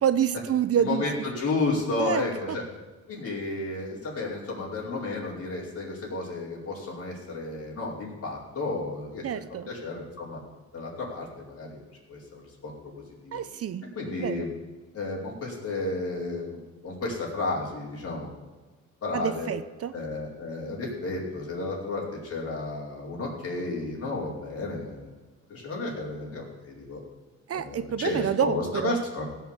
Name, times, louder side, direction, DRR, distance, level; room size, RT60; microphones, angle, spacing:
voice 1, 0.0-1.0 2.0-2.2 9.2-9.7 13.3-13.9 14.2-14.4 19.1-19.9 27.5-29.0, right 9 dB, 50° right, 13 dB, 0.7 m, -27 dB
voice 2, 0.8-2.6 3.1-9.3 9.7-10.4 10.7-11.8 12.1-13.4 13.9-14.5 14.9-18.3 19.0-19.5 19.9-25.1 25.5-27.0 27.5-29.3, left 3 dB, 50° left, -4 dB, 5.0 m, -32 dB
16.5 x 6.0 x 7.4 m, 1.3 s
cardioid pair, 90°, 30 cm